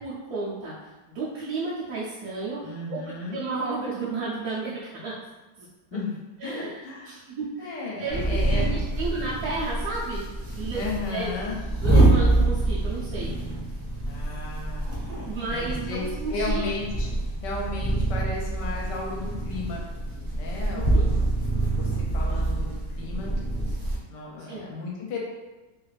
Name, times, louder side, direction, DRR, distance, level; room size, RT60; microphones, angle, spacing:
voice 1, 0.0-5.2 5.6-5.7 6.4-10.2 10.6-11.3 11.8-13.3 15.2-16.7 20.7-21.0 24.5-24.7, right 3 dB, 70° right, -8 dB, 1.0 m, -33 dB
voice 2, 2.6-3.4 5.9-6.1 6.4-7.1 7.6-8.9 10.7-11.6 14.1-14.9 15.4-16.0 16.3-17.1 17.4-19.8 20.3-21.2 21.7-22.7 23.0-23.4 24.1-25.2, left 3 dB, 80° left, -3 dB, 1.2 m, -34 dB
sound 1, 8.1-24.0, right 2 dB, 40° right, 0.5 m, -26 dB
3.1 x 2.4 x 3.1 m, 1.2 s
omnidirectional pair, 1.9 m